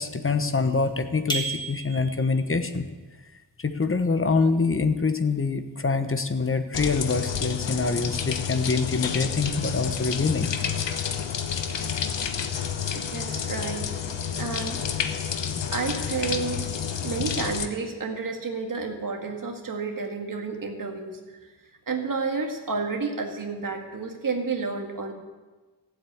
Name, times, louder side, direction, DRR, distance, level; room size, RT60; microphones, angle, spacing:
voice 1, 0.0-2.9 3.6-10.5, left 4 dB, 30° left, 8 dB, 1.0 m, -25 dB
sound 1, 1.3-2.4, right 3 dB, 10° left, 2.1 m, -31 dB
sound 2, 6.7-17.7, left 7 dB, 75° left, 1.1 m, -30 dB
voice 2, 13.1-13.9 14.4-14.8 15.7-16.7 17.0-21.5 21.9-25.1, right 4 dB, 45° right, 2 dB, 2.2 m, -30 dB
15.0 x 8.0 x 8.6 m, 1.3 s
wide cardioid pair, 125°, 44 cm